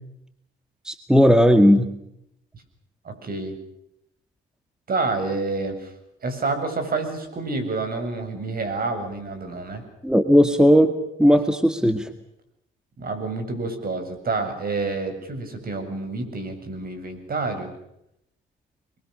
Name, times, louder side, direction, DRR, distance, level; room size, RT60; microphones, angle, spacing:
voice 1, 0.9-1.9 10.0-10.9 11.2-12.1, equal, 5° right, 9 dB, 2.0 m, -16 dB
voice 2, 3.0-3.5 4.9-5.9 6.2-9.8 13.0-17.7, right 3 dB, 50° right, 7 dB, 7.8 m, -28 dB
30.0 x 23.0 x 6.7 m, 0.79 s
cardioid pair, 90°, 20 cm